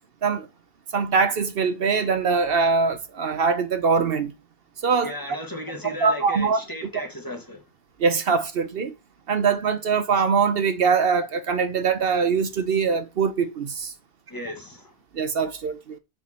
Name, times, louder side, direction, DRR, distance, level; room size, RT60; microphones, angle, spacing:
voice 1, 0.9-4.3 4.8-5.2 5.8-7.1 8.0-8.9 9.3-13.9 15.1-16.0, right 5 dB, 65° right, 1.0 m, -23 dB
voice 2, 5.0-7.6 14.3-14.9, left 1 dB, 20° left, 1.4 m, -35 dB
7.1 x 4.5 x 4.3 m
omnidirectional pair, 1.1 m